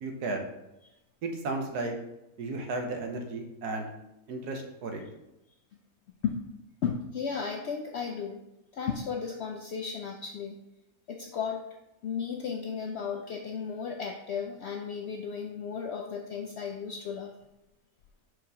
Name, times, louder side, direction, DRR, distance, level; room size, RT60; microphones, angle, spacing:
voice 1, 0.0-0.4 1.2-1.9 2.4-3.9 4.3-5.0, right 2 dB, 85° right, 4 dB, 1.5 m, -34 dB
voice 2, 6.8-8.4 8.7-10.6 11.1-11.7 12.0-17.3, left 6 dB, 75° left, 3 dB, 0.6 m, -34 dB
4.7 x 4.6 x 5.3 m, 0.91 s
omnidirectional pair, 1.7 m